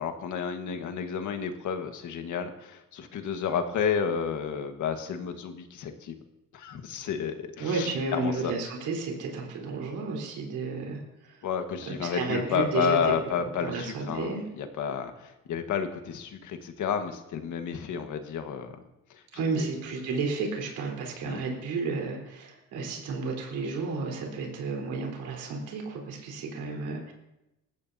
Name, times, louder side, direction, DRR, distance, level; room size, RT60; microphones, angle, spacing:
voice 1, 0.0-6.1 6.5-8.5 11.4-18.8 19.1-19.7 21.2-21.4, left 7 dB, 75° left, 6 dB, 1.6 m, -31 dB
voice 2, 7.6-11.5 11.9-13.0 13.6-14.4 19.3-27.1, right 4 dB, 90° right, 0 dB, 4.1 m, -32 dB
20.5 x 15.0 x 2.8 m, 0.93 s
cardioid pair, 90°, 30 cm